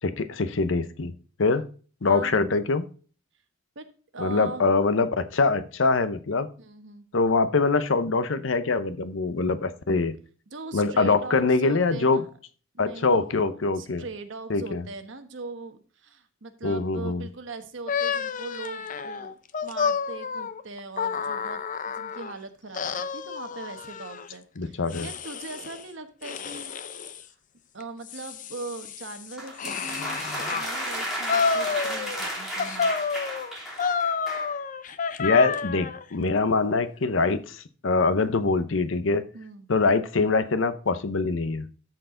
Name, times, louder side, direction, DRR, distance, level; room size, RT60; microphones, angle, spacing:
voice 1, 0.0-1.1 1.4-1.6 2.0-2.9 4.2-6.5 7.1-10.1 10.7-12.3 12.8-14.0 14.5-14.8 16.6-17.3 24.6-25.1 35.2-39.3 39.7-41.7, left 3 dB, 75° left, 0.7 m, -24 dB
voice 2, 2.0-2.4 3.7-3.9 4.1-4.7 6.6-7.1 10.5-12.3 12.7-13.3 13.7-19.3 19.6-21.6 21.9-27.2 27.7-30.2 30.5-32.9 39.3-39.7, right 3 dB, 70° right, 1.2 m, -40 dB
sound 1, 17.9-22.3 22.7-24.3 24.9-25.8 26.2-27.2 27.8-30.7 31.3-32.3 32.6-36.0, left 5 dB, 45° left, 0.6 m, -30 dB
sound 2, 29.4-34.5, equal, ahead, 3.1 m, -33 dB
13.5 x 4.6 x 3.8 m
head